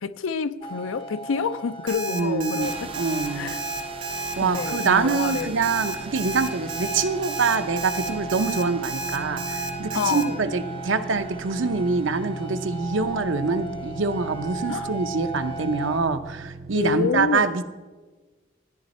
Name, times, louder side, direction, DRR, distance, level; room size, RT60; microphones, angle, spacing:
voice 1, 0.0-3.0 3.3-3.6 4.4-5.6 9.9-10.5 14.7-14.9 16.7-17.5, left 5 dB, 85° left, 0.5 m, -28 dB
sound 1, 0.6-16.0, right 3 dB, 30° left, 0.5 m, -38 dB
Alarm, 1.9-10.2, right 3 dB, 90° right, 1.8 m, -32 dB
voice 2, 2.1-2.7 3.0-3.6 4.4-17.6, right 4 dB, 75° right, 0.7 m, -25 dB
sound 2, 2.6-16.9, right 2 dB, 30° right, 0.4 m, -38 dB
13.5 x 10.5 x 4.3 m
head